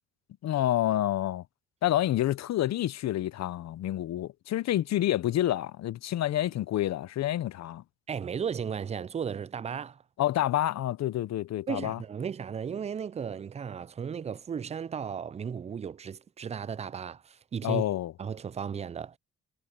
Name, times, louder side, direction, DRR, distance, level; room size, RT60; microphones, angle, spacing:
voice 1, 0.4-1.4 1.8-7.8 10.2-12.0 17.6-18.1, left 13 dB, 60° left, 0.6 m, -28 dB
voice 2, 8.1-10.0 11.7-17.8 18.2-19.2, right 7 dB, 25° right, 0.3 m, -35 dB
cardioid pair, 90°, 30 cm